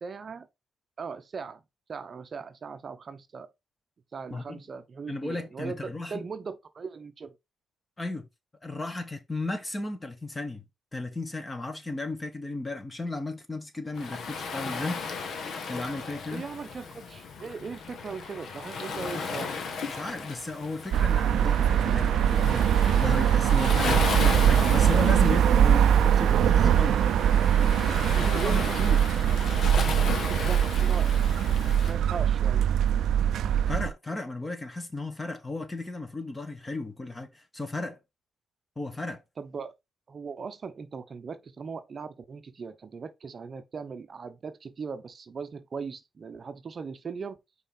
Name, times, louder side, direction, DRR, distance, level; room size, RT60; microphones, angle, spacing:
voice 1, 0.0-0.5 1.0-1.6 1.9-3.5 4.1-7.4 16.3-19.6 27.9-28.8 30.0-31.2 31.9-32.7 39.4-39.7 40.1-47.4, right 5 dB, 40° right, 0.7 m, -39 dB
voice 2, 4.3-4.6 5.1-6.2 8.0-8.3 8.6-10.6 10.9-15.0 15.7-16.5 19.1-19.3 19.9-27.0 28.0-29.0 33.7-38.0 38.8-39.2, left 2 dB, 20° left, 1.5 m, -34 dB
Waves surf, 14.0-31.9, left 5 dB, 65° left, 1.2 m, -35 dB
sound 1, 20.9-33.9, right 9 dB, 75° right, 0.4 m, -22 dB
5.5 x 4.1 x 4.2 m
cardioid pair, 90°, 0 cm